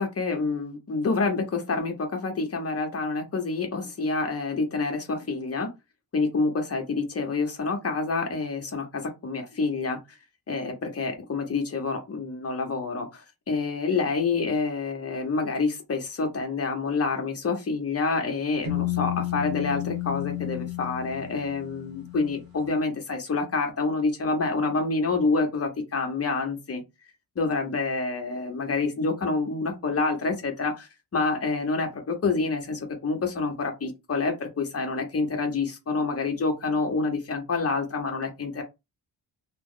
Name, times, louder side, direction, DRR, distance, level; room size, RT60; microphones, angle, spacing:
voice 1, 0.0-5.7 6.1-10.0 10.5-26.8 27.4-38.6, left 4 dB, 35° left, 0.9 m, -27 dB
sound 1, 18.6-22.5, left 14 dB, 55° right, 0.9 m, -32 dB
2.9 x 2.1 x 3.7 m
wide cardioid pair, 135°, 41 cm